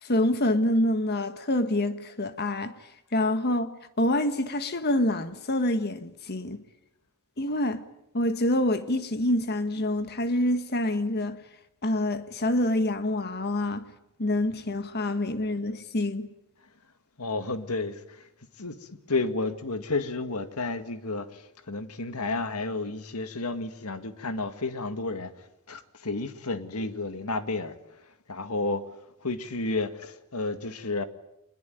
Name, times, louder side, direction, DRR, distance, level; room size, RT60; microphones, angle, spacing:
voice 1, 0.0-2.7 3.1-3.7 4.0-6.6 7.4-7.8 8.1-11.4 11.8-13.8 14.2-16.3, left 1 dB, 50° left, 1.6 m, -26 dB
voice 2, 17.2-18.2 18.6-25.3 25.7-27.8 28.3-28.9 29.2-31.0, left 3 dB, 80° left, 2.0 m, -31 dB
24.0 x 21.5 x 9.1 m
head